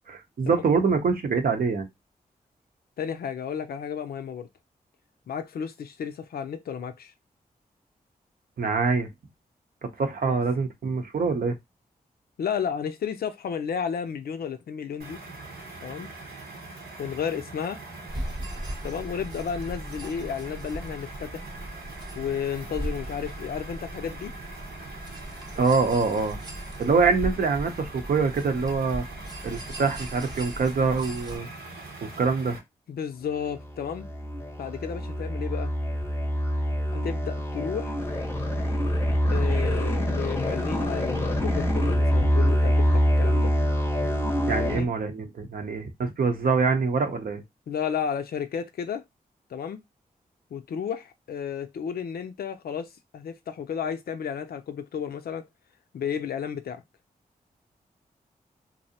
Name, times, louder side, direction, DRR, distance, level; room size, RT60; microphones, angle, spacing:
voice 1, 0.1-1.9 8.6-9.1 10.0-11.6 25.6-26.4 26.8-29.0 29.4-31.5 32.2-32.6 44.5-47.4, right 4 dB, 65° right, 0.7 m, -24 dB
voice 2, 3.0-4.5 5.3-7.1 10.3-10.4 12.4-15.2 15.8-16.1 17.0-17.8 18.8-21.5 22.1-24.3 32.9-34.1 34.6-35.7 36.9-38.0 39.3-43.5 44.6-44.9 47.7-49.0 49.5-49.8 50.5-55.5 55.9-56.8, left 7 dB, 70° left, 0.4 m, -32 dB
sound 1, 15.0-32.6, right 3 dB, 85° right, 0.9 m, -42 dB
sound 2, 18.1-31.4, right 1 dB, 25° right, 0.7 m, -38 dB
sound 3, 33.4-44.8, equal, 15° left, 0.6 m, -25 dB
2.6 x 2.0 x 2.7 m
cardioid pair, 45°, 16 cm